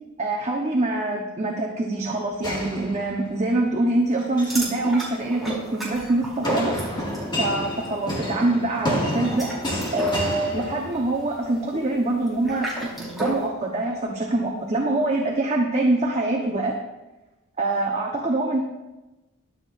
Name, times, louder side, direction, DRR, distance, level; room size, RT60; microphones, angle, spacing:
voice 1, 0.2-6.7 7.3-9.5 9.9-12.7 13.0-16.7 17.6-18.6, right 2 dB, 35° right, -1 dB, 1.1 m, -24 dB
sound 1, 2.4-3.5 4.2-4.7 6.4-11.3, equal, 20° left, 2.1 m, -29 dB
sound 2, 4.4-7.3 7.6-7.9 9.1-13.5, right 1 dB, ahead, 4.5 m, -33 dB
22.5 x 7.6 x 2.6 m, 1.1 s
head